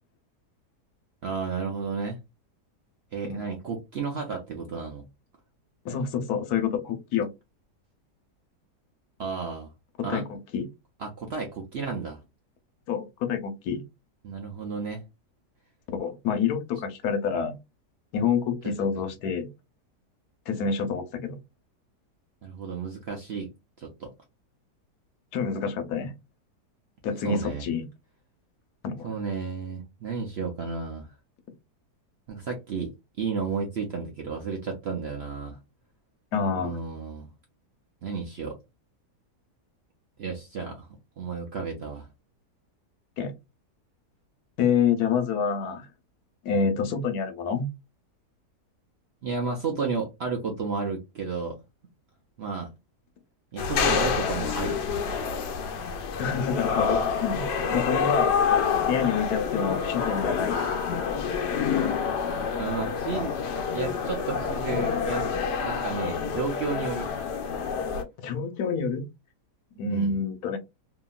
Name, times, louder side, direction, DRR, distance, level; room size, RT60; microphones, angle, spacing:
voice 1, 1.2-2.2 3.1-5.1 9.2-9.7 10.0-10.3 11.0-12.2 14.2-15.0 18.6-18.7 22.4-23.5 23.8-24.1 27.2-27.7 29.0-31.1 32.3-32.9 33.2-35.6 36.6-37.3 38.0-38.6 40.2-40.9 41.2-42.1 49.2-51.6 52.4-52.7 53.5-54.9 62.6-63.3 63.7-65.3 65.6-67.1 69.9-70.1, right 5 dB, 65° right, 0.6 m, -32 dB
voice 2, 5.8-7.3 10.1-10.7 12.9-13.8 15.9-17.5 18.1-19.5 20.5-21.4 25.3-26.1 27.0-27.8 28.8-29.1 36.3-36.8 43.2-43.3 44.6-45.9 46.4-47.7 56.2-58.4 58.9-60.6 68.2-69.0 69.8-70.6, left 6 dB, 70° left, 1.1 m, -27 dB
sound 1, 53.6-68.0, left 6 dB, 90° left, 1.2 m, -27 dB
2.9 x 2.6 x 2.3 m
omnidirectional pair, 1.8 m